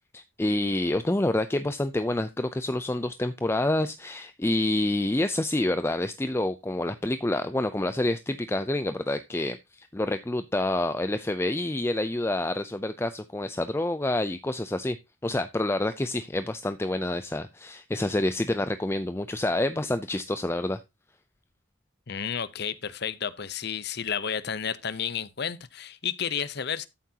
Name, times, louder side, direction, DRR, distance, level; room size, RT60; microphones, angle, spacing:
voice 1, 0.1-15.0 15.2-20.8, left 1 dB, 10° left, 0.4 m, -28 dB
voice 2, 22.1-26.9, left 7 dB, 55° left, 0.7 m, -31 dB
13.0 x 7.5 x 2.8 m
head